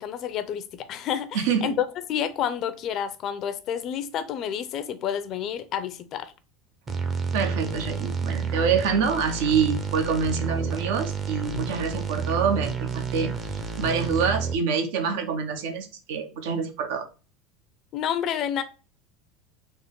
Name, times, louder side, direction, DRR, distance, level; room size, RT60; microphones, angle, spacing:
voice 1, 0.0-6.3 17.9-18.6, left 9 dB, 45° left, 0.5 m, -29 dB
voice 2, 1.3-1.8 7.3-13.3 13.8-17.0, right 6 dB, 80° right, 0.7 m, -26 dB
sound 1, 6.9-14.5, right 5 dB, 25° right, 0.6 m, -30 dB
3.7 x 2.1 x 3.7 m
supercardioid pair, 125°, 0 cm